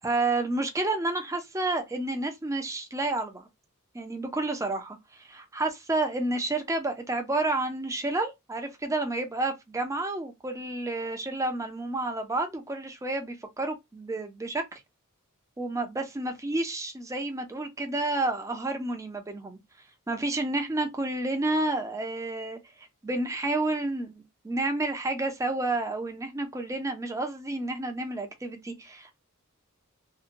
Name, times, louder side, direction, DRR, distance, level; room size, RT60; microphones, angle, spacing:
voice 1, 0.0-3.5 3.9-14.8 15.6-19.6 20.1-22.6 23.0-29.2, right 2 dB, 15° right, 0.5 m, -30 dB
2.7 x 2.2 x 2.5 m
head